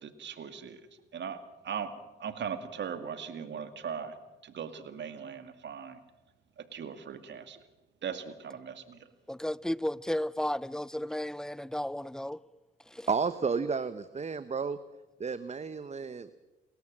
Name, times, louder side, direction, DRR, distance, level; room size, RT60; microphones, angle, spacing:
voice 1, 0.0-0.9 1.1-1.9 2.2-4.2 4.4-6.0 6.7-7.6 8.0-9.0, right 7 dB, 60° right, 2.3 m, -39 dB
voice 2, 9.3-12.4 12.9-13.1, left 1 dB, 5° left, 0.6 m, -33 dB
voice 3, 13.1-14.8 15.2-16.3, right 5 dB, 35° right, 0.9 m, -32 dB
29.5 x 13.0 x 7.6 m
supercardioid pair, 60°, 20 cm